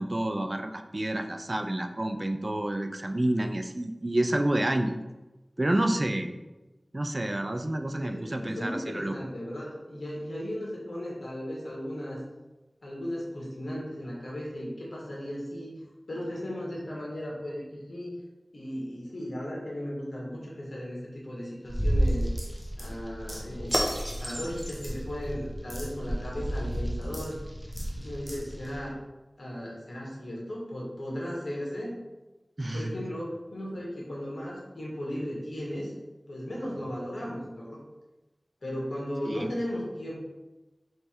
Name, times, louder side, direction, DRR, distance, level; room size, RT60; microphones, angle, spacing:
voice 1, 0.0-5.0 5.6-6.3 6.9-9.1 32.6-33.1 39.3-39.5, right 1 dB, 40° right, 6 dB, 0.4 m, -29 dB
voice 2, 8.0-12.2 12.8-15.7 16.1-18.2 18.5-22.3 22.8-23.9 24.2-27.4 28.0-28.9 29.4-32.0 32.6-35.9 36.3-37.8 38.6-40.2, equal, 90° left, -4 dB, 1.3 m, -36 dB
sound 1, 21.7-28.9, equal, ahead, 0.8 m, -31 dB
3.4 x 3.3 x 4.3 m, 1.1 s
wide cardioid pair, 60°, 0 cm